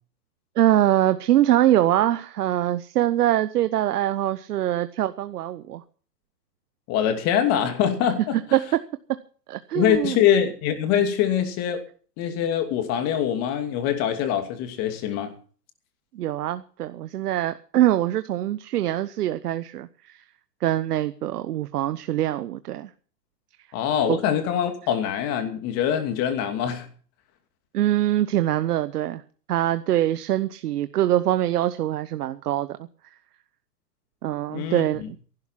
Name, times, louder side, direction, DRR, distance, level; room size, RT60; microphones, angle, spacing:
voice 1, 0.6-5.8 8.5-8.8 9.1-9.2 9.5-10.2 16.1-20.2 20.6-22.9 24.1-24.2 27.7-29.2 29.5-32.8 34.2-35.2, right 13 dB, 65° right, 1.0 m, -23 dB
voice 2, 6.9-8.4 9.7-11.8 12.2-15.3 23.7-26.9 34.5-35.1, left 9 dB, 30° left, 2.6 m, -24 dB
14.5 x 12.0 x 5.7 m
hypercardioid pair, 150°, 49 cm